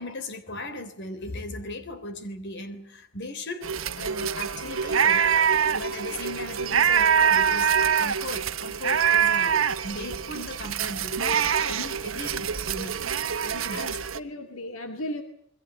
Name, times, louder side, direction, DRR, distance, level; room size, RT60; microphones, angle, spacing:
voice 1, 0.0-3.7 4.0-5.3 5.7-13.1 13.4-13.9, left 2 dB, 60° left, 3.4 m, -37 dB
sound 1, 3.6-14.2, right 7 dB, 75° right, 1.2 m, -24 dB
voice 2, 13.7-15.2, left 1 dB, 75° left, 2.2 m, -36 dB
28.5 x 21.5 x 7.4 m
head